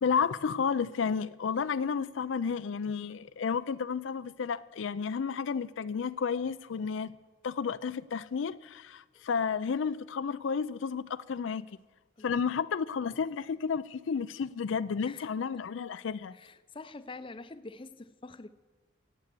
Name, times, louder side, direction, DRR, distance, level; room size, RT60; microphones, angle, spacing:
voice 1, 0.0-7.2 7.4-11.7 12.2-16.4, left 6 dB, 80° left, 0.4 m, -32 dB
voice 2, 15.0-15.5 16.3-18.5, left 3 dB, 25° left, 0.6 m, -46 dB
17.0 x 8.0 x 8.2 m
head